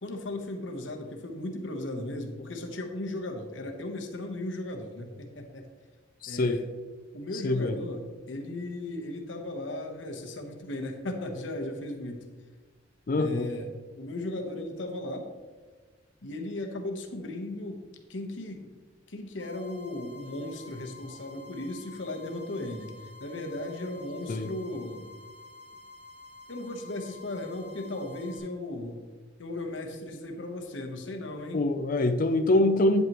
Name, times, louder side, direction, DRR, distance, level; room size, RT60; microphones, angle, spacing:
voice 1, 0.0-5.6 6.3-6.7 7.1-12.2 13.1-13.7 14.0-15.2 16.2-17.8 18.1-18.7 19.1-22.9 23.2-25.1 26.5-29.0 29.4-31.6, left 1 dB, 80° left, 3 dB, 1.1 m, -36 dB
voice 2, 6.2-6.6 7.3-7.8 13.1-13.5 24.3-24.5 31.5-33.0, left 2 dB, 45° left, 7 dB, 0.5 m, -24 dB
sound 1, 19.4-28.4, left 3 dB, 60° right, 2.2 m, -50 dB
9.2 x 8.1 x 3.0 m, 1.4 s
head